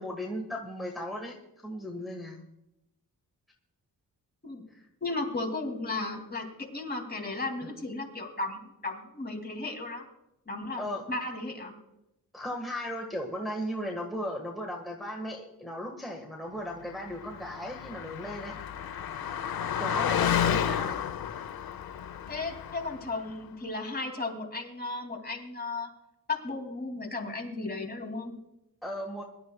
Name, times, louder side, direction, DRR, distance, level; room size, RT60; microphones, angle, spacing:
voice 1, 0.0-1.3 1.6-2.4 4.7-4.8 10.8-11.0 12.3-18.5 19.8-20.9 28.8-29.2, equal, ahead, 0 dB, 1.7 m, -36 dB
voice 2, 5.0-10.0 10.5-11.8 22.3-25.9 26.3-28.3, left 3 dB, 25° left, 2 dB, 2.8 m, -35 dB
Car passing by, 17.2-23.1, left 9 dB, 70° left, 0.9 m, -31 dB
23.0 x 12.5 x 2.4 m, 0.89 s
wide cardioid pair, 120°, 37 cm